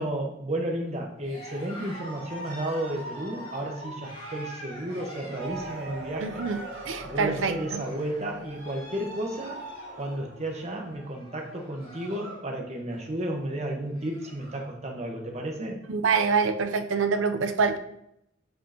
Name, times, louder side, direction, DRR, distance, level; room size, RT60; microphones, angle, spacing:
voice 1, 0.0-6.5 7.0-9.6 10.0-15.8, right 1 dB, 35° right, 1 dB, 1.1 m, -33 dB
Cheering, 1.2-12.5 12.8-13.2 13.6-13.7 13.9-14.7, right 1 dB, 30° left, 2.5 m, -43 dB
sound 1, 5.4-10.9, right 2 dB, 60° right, 1.1 m, -43 dB
voice 2, 6.2-6.6 6.8-7.8 15.9-17.8, right 5 dB, 90° right, 8 dB, 0.6 m, -25 dB
7.7 x 5.4 x 2.9 m, 0.79 s
head